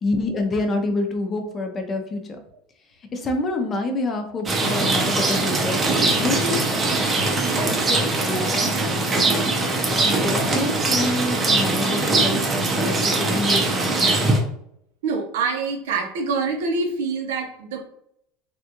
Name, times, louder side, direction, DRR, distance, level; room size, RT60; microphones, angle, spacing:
voice 1, 0.0-2.4 3.1-7.2 7.5-9.4 9.9-14.1, left 2 dB, 25° left, 4 dB, 0.5 m, -28 dB
Rain, 4.5-14.4, right 2 dB, 20° right, 0.6 m, -21 dB
voice 2, 15.0-17.9, right 4 dB, 90° right, 2 dB, 0.8 m, -25 dB
3.5 x 2.3 x 2.8 m, 0.72 s
supercardioid pair, 135°, 0 cm